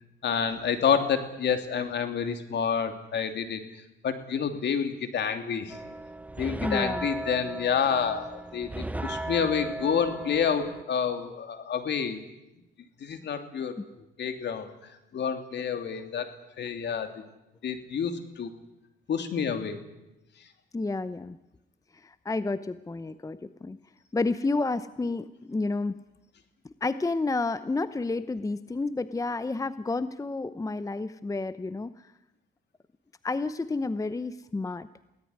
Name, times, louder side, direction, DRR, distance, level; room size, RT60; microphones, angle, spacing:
voice 1, 0.2-3.6 4.0-5.8 6.4-12.2 13.0-13.8 14.2-14.7 15.1-16.3 16.6-17.2 17.6-18.5 19.1-19.8, left 7 dB, 60° left, 7 dB, 3.1 m, -28 dB
sound 1, 5.7-10.8, right 2 dB, 5° right, 1.2 m, -36 dB
voice 2, 6.6-7.1 20.7-21.4 22.0-23.8 24.1-26.0 26.6-31.9 33.2-34.9, left 3 dB, 15° left, 14 dB, 0.8 m, -30 dB
22.5 x 18.0 x 9.7 m, 0.94 s
cardioid pair, 90°, 20 cm